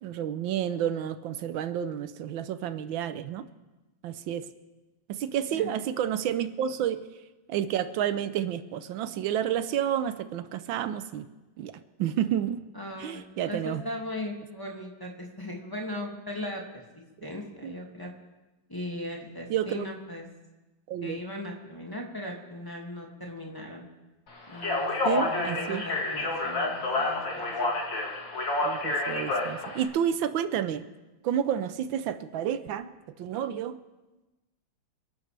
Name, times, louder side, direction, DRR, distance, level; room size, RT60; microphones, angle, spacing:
voice 1, 0.0-3.5 4.0-4.5 5.1-7.0 7.5-11.3 11.6-12.6 13.0-13.8 17.6-17.7 19.5-19.9 20.9-21.2 25.0-25.8 28.6-30.9 31.2-32.9 33.2-33.8, right 10 dB, 85° right, 12 dB, 1.5 m, -30 dB
voice 2, 12.7-18.1 18.7-20.3 21.0-23.8 24.5-27.5, left 1 dB, 10° left, -2 dB, 2.0 m, -38 dB
Speech, 24.5-29.9, left 2 dB, 75° left, 3.3 m, -29 dB
28.0 x 11.5 x 3.3 m, 1.1 s
omnidirectional pair, 2.1 m